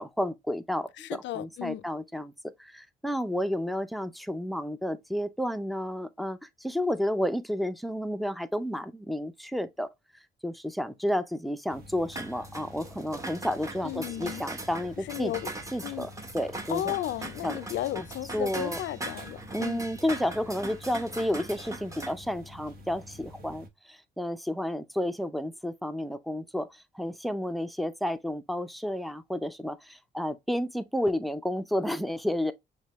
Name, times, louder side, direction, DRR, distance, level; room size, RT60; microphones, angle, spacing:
voice 1, 0.0-2.3 2.6-9.9 10.4-15.3 15.7-17.0 17.4-17.6 17.9-18.1 18.3-18.8 19.5-32.5, equal, ahead, 0.4 m, -31 dB
voice 2, 1.0-1.8 13.8-14.4 15.1-15.5 15.8-16.1 16.7-19.9, left 13 dB, 70° left, 0.4 m, -34 dB
sound 1, 11.7-23.7, left 1 dB, 50° right, 1.1 m, -48 dB
sound 2, 12.1-22.1, right 2 dB, 15° right, 0.9 m, -40 dB
6.2 x 2.2 x 2.9 m
cardioid pair, 90°, 20 cm